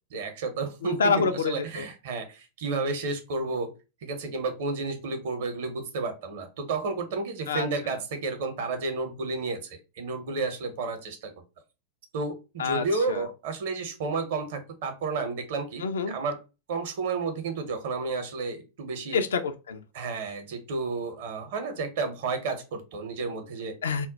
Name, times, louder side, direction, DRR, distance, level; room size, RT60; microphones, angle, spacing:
voice 1, 0.1-3.7 4.0-11.3 12.1-16.4 16.7-19.2 19.9-23.8, right 4 dB, 55° right, 0.7 m, -31 dB
voice 2, 0.8-1.9 7.5-8.0 12.6-13.3 15.8-16.1 19.1-19.8 23.8-24.1, left 5 dB, 65° left, 0.3 m, -27 dB
2.2 x 2.1 x 3.8 m
figure-of-eight pair, 90°, 0 cm